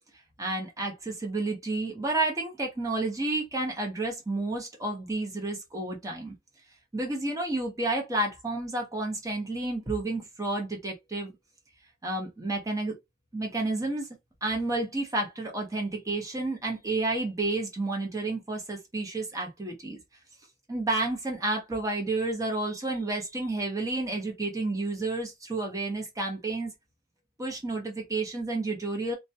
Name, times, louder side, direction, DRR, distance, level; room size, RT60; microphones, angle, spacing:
voice 1, 0.4-6.3 6.9-11.3 12.0-13.0 13.3-14.1 14.4-20.0 20.7-26.7 27.4-29.2, right 2 dB, 20° right, 0.7 m, -30 dB
2.2 x 2.2 x 2.7 m
head